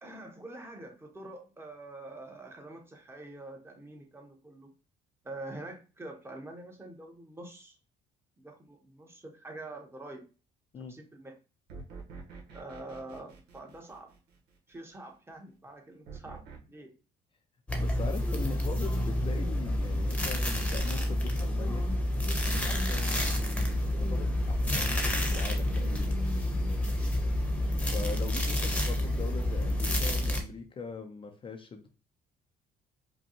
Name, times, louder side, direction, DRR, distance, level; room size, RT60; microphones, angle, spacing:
voice 1, 0.0-4.7 5.2-7.8 8.4-10.2 10.9-11.3 12.5-14.1 14.7-16.9, right 2 dB, 15° right, 2 dB, 1.0 m, -45 dB
sound 1, 11.7-14.6 16.0-16.6, right 4 dB, 80° right, 1.2 m, -47 dB
sound 2, 17.7-30.4, left 1 dB, 5° left, 1.0 m, -29 dB
voice 2, 17.8-21.9 22.4-26.2 27.8-31.9, left 4 dB, 30° left, 5 dB, 0.6 m, -41 dB
5.1 x 2.3 x 3.0 m, 0.34 s
cardioid pair, 110°, 17 cm